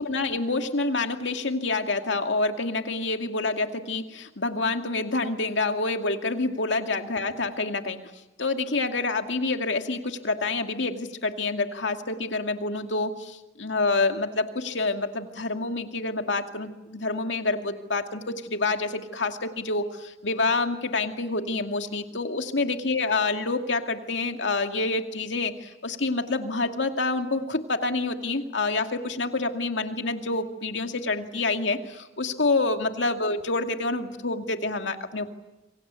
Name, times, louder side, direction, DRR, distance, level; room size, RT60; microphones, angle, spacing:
voice 1, 0.0-8.0 8.4-35.3, left 3 dB, 85° left, 6 dB, 2.4 m, -27 dB
28.0 x 24.5 x 8.3 m, 1.0 s
head